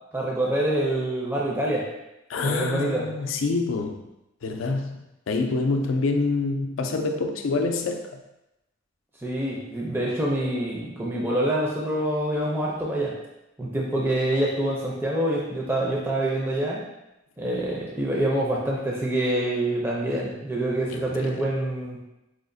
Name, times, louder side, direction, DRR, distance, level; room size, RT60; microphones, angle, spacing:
voice 1, 0.1-1.8 2.4-3.0 9.2-13.1 13.6-16.8 17.4-22.0, right 1 dB, 10° right, -4 dB, 0.4 m, -26 dB
voice 2, 2.3-4.1 4.4-5.0 5.3-8.2 20.9-21.4, left 3 dB, 80° left, 5 dB, 0.4 m, -26 dB
4.8 x 2.4 x 2.5 m, 0.92 s
head